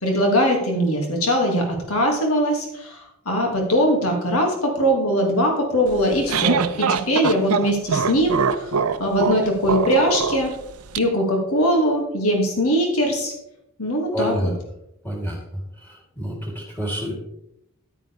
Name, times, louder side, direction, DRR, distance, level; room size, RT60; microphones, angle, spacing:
voice 1, 0.0-8.7 9.0-10.5 11.0-13.3 13.8-14.5, equal, 75° left, 1 dB, 2.4 m, -21 dB
sound 1, 5.9-11.0, right 6 dB, 80° right, 0.6 m, -23 dB
voice 2, 14.1-14.5 15.0-15.4 15.8-17.1, equal, 10° left, -2 dB, 3.3 m, -28 dB
11.0 x 9.2 x 3.5 m, 0.80 s
head